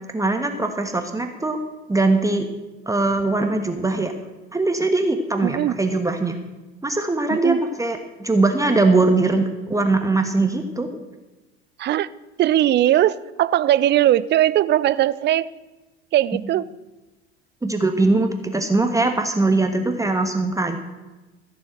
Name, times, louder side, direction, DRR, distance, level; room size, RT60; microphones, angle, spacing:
voice 1, 0.1-1.6 1.9-2.5 2.9-4.1 4.5-6.4 6.8-11.0 17.6-20.8, right 2 dB, 10° right, 5 dB, 1.4 m, -21 dB
voice 2, 5.4-5.8 7.3-7.6 11.8-12.1 12.4-15.5 16.1-16.7, right 13 dB, 35° right, 18 dB, 0.6 m, -19 dB
15.0 x 7.0 x 7.9 m, 1.1 s
figure-of-eight pair, 75°, 32 cm